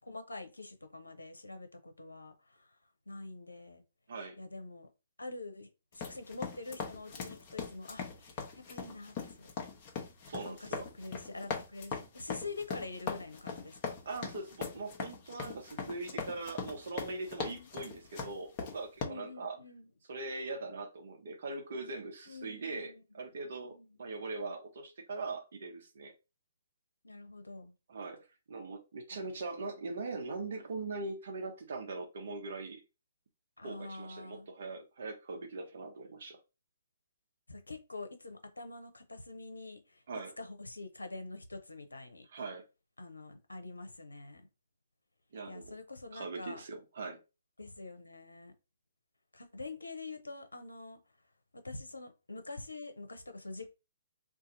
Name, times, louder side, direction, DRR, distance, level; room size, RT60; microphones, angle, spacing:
voice 1, 0.0-2.8 3.1-3.8 4.4-4.9 5.2-5.7 5.9-9.5 10.4-13.9 17.4-18.0 19.0-19.9 22.3-23.0 23.7-24.0 27.0-27.7 33.6-34.5 37.5-40.0 40.4-42.3 43.0-44.4 45.5-46.6 47.6-48.5 49.3-51.0 51.5-53.7, left 3 dB, 85° left, 0.8 m, -46 dB
sound 1, 5.9-19.0, left 5 dB, 35° left, 1.0 m, -40 dB
voice 2, 10.2-10.8 14.0-19.6 20.1-26.1 27.9-28.2 28.5-32.8 33.6-36.4 40.1-40.3 42.3-42.6 45.3-45.7 46.1-47.2, right 3 dB, 60° right, 1.0 m, -41 dB
2.8 x 2.6 x 3.9 m
figure-of-eight pair, 130°, 0 cm